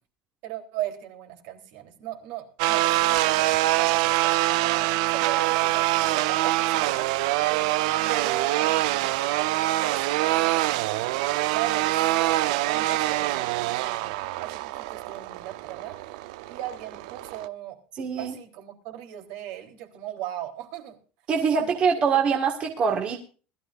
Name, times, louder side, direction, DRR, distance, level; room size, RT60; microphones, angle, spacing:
voice 1, 0.4-7.8 8.1-9.2 9.8-16.0 16.5-17.8 18.2-21.0 21.6-21.7, right 13 dB, 70° right, 4 dB, 3.6 m, -38 dB
sound 1, 2.6-17.5, right 17 dB, 90° right, 0.7 m, -25 dB
voice 2, 18.0-18.3 21.3-23.2, right 6 dB, 30° right, 2 dB, 1.8 m, -24 dB
21.0 x 13.5 x 2.6 m, 0.37 s
cardioid pair, 160°, 4 cm